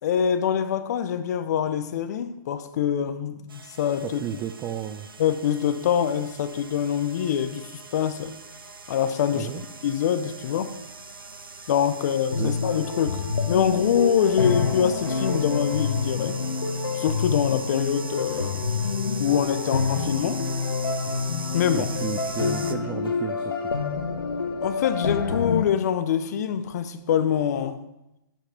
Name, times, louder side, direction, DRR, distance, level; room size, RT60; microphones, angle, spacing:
voice 1, 0.0-4.2 5.2-8.4 8.9-10.7 11.7-16.4 16.9-18.7 19.2-20.4 21.5-21.9 24.6-27.8, left 8 dB, 50° left, 0.7 m, -25 dB
sound 1, 3.5-22.7, right 4 dB, 85° right, 0.7 m, -41 dB
voice 2, 4.0-5.1 9.3-9.6 12.4-12.6 21.7-23.7, right 11 dB, 15° right, 0.3 m, -33 dB
sound 2, 12.3-25.6, left 5 dB, 90° left, 1.0 m, -27 dB
9.1 x 7.3 x 3.5 m
hypercardioid pair, 135°, 11 cm